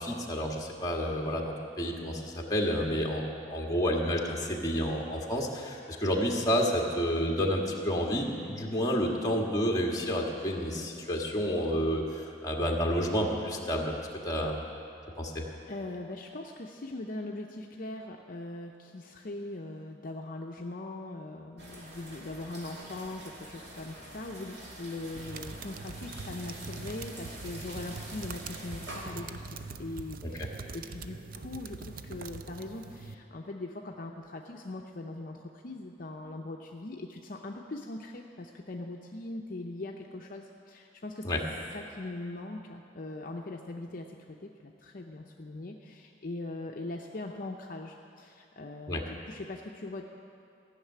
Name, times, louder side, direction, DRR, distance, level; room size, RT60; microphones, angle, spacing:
voice 1, 0.0-14.0 14.2-14.6 15.2-15.4 30.2-30.5 41.2-41.4 48.9-49.0, equal, 20° left, -1 dB, 1.5 m, -30 dB
voice 2, 15.7-41.3 41.7-50.0, left 2 dB, 50° left, 1 dB, 0.7 m, -41 dB
sound 1, 21.6-29.0, right 1 dB, 90° right, 2.3 m, -46 dB
sound 2, 25.1-33.1, right 4 dB, 55° right, 0.5 m, -43 dB
15.0 x 6.6 x 9.2 m, 2.7 s
head